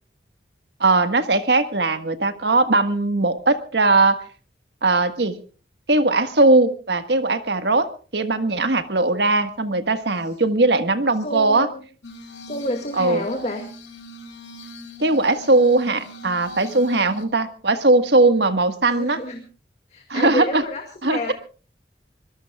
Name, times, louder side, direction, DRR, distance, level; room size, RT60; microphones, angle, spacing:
voice 1, 0.8-4.2 4.8-5.4 5.9-11.7 12.9-13.3 15.0-19.2 20.1-20.6 21.0-21.3, right 2 dB, 70° right, 10 dB, 1.5 m, -19 dB
voice 2, 11.2-11.8 12.4-13.7 18.8-19.4 19.9-21.3, left 1 dB, 40° left, 3 dB, 2.2 m, -29 dB
Glass, 12.0-17.2, equal, 85° left, 3.1 m, -40 dB
24.5 x 21.5 x 2.4 m, 0.36 s
head